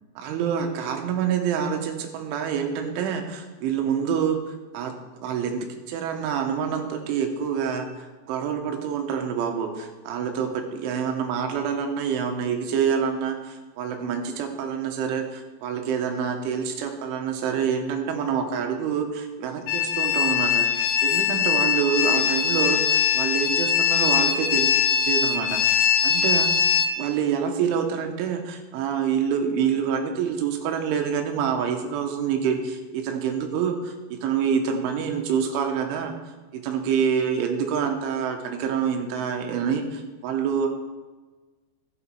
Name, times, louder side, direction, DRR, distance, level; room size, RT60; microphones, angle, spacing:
voice 1, 0.2-4.9 5.2-24.8 25.1-26.7 27.0-36.1 36.5-40.7, right 7 dB, 85° right, 4 dB, 3.5 m, -27 dB
sound 1, 19.7-26.9, left 8 dB, 85° left, 3.3 m, -22 dB
14.5 x 7.9 x 4.6 m, 1.3 s
omnidirectional pair, 5.5 m